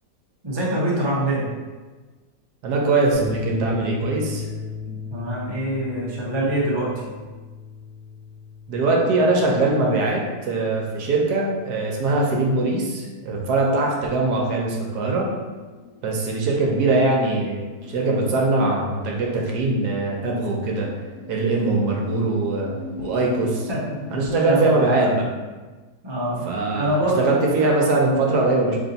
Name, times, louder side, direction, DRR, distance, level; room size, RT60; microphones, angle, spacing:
voice 1, 0.4-1.4 4.9-7.1 23.7-24.0 24.5-25.1 26.0-26.4 26.8-27.7, right 1 dB, 35° right, -5 dB, 0.4 m, -25 dB
voice 2, 2.6-4.5 8.7-15.2 16.0-20.9 21.3-23.7 24.1-25.3 26.4-26.9 27.2-28.8, right 2 dB, 70° right, -1 dB, 1.2 m, -22 dB
sound 1, 3.1-11.6, left 5 dB, 35° left, 1.2 m, -36 dB
sound 2, 13.1-24.7, left 2 dB, 70° left, 0.8 m, -42 dB
3.4 x 2.6 x 4.0 m, 1.3 s
omnidirectional pair, 1.8 m